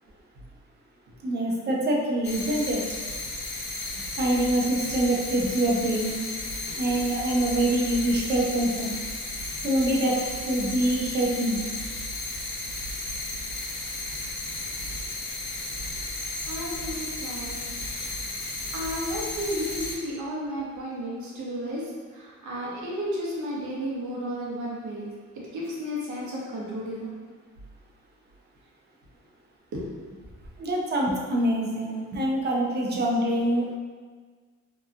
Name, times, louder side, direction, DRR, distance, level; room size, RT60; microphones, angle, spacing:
voice 1, 1.2-2.8 4.2-6.2 6.8-9.0 9.6-11.6 30.6-33.8, right 1 dB, 35° right, -2 dB, 0.6 m, -25 dB
sound 1, 2.2-20.0, left 2 dB, 65° left, 0.7 m, -34 dB
voice 2, 16.5-17.5 18.3-25.1 25.5-27.1 29.7-30.1, equal, 70° right, -5 dB, 0.9 m, -33 dB
2.9 x 2.3 x 2.4 m, 1.5 s
cardioid pair, 90°, 30 cm